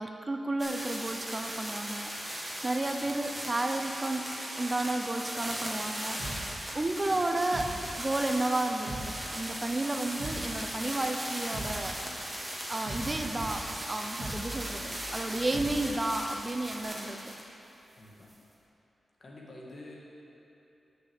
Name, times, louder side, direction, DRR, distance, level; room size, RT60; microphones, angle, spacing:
voice 1, 0.0-7.7 8.0-12.3 12.7-17.3, right 2 dB, 35° right, 5 dB, 0.7 m, -32 dB
sound 1, 0.6-17.4 18.3-18.4, right 1 dB, 15° right, 1.7 m, -38 dB
sound 2, 6.2-8.4 8.7-16.4 16.7-16.8, right 1 dB, 80° right, 2.1 m, -41 dB
voice 2, 18.0-18.3 19.2-20.0, left 1 dB, 55° left, -4 dB, 2.0 m, -48 dB
6.6 x 6.4 x 7.2 m, 3.0 s
supercardioid pair, 40°, 0 cm